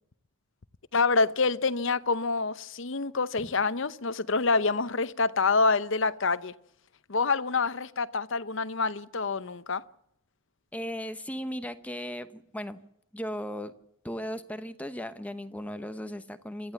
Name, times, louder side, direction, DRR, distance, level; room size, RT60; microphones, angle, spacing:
voice 1, 0.9-6.5 7.1-9.8, left 4 dB, 55° left, 0.8 m, -27 dB
voice 2, 10.7-12.8 13.1-13.7 14.0-16.7, equal, 5° left, 0.9 m, -36 dB
26.0 x 14.5 x 7.2 m
head